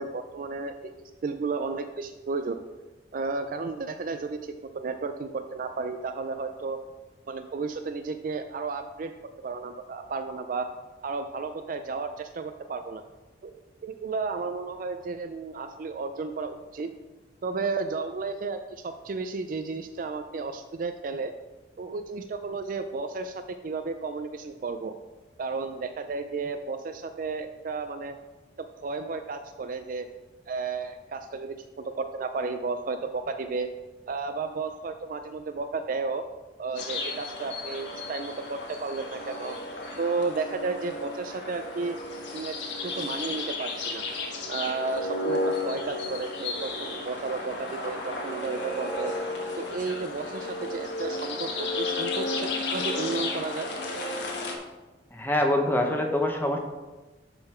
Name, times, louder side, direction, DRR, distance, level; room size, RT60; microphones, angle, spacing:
voice 1, 0.0-2.6 3.1-6.8 7.3-9.1 9.4-10.7 11.0-13.0 13.4-13.5 13.8-16.9 17.4-21.3 21.8-24.9 25.4-28.2 28.6-30.1 30.5-33.7 34.1-36.2 36.6-39.6 40.0-42.0 42.3-44.0 44.5-49.2 49.5-53.7, right 4 dB, 50° right, 8 dB, 0.4 m, -33 dB
sound 1, 36.8-54.6, left 2 dB, 75° left, 1.3 m, -33 dB
voice 2, 55.1-56.6, left 1 dB, 10° left, 3 dB, 0.9 m, -25 dB
11.0 x 3.8 x 4.4 m, 1.2 s
head